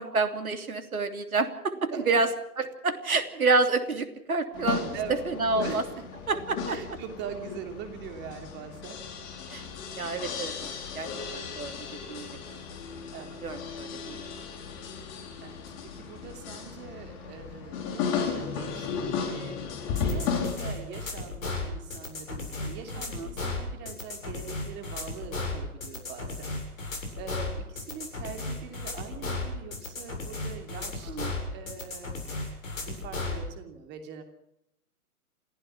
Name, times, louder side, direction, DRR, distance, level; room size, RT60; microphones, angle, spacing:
voice 1, 0.0-2.3 2.6-4.8 5.3-5.8 6.3-6.8 9.5-9.6 10.0-10.7 10.9-12.3 13.4-14.3 23.1-23.3 31.1-31.3, right 3 dB, 70° right, 8 dB, 3.2 m, -28 dB
voice 2, 1.7-2.2 4.9-5.2 5.5-6.1 6.7-9.5 10.0-10.4 13.1-13.5 15.4-19.6 20.0-31.1 31.5-34.2, right 7 dB, 25° right, 6 dB, 3.0 m, -42 dB
sound 1, 4.5-20.6, left 6 dB, 30° left, 4.6 m, -35 dB
sound 2, 20.0-33.4, left 3 dB, 60° left, 7.9 m, -35 dB
28.0 x 15.5 x 6.0 m, 0.81 s
figure-of-eight pair, 120°, 44 cm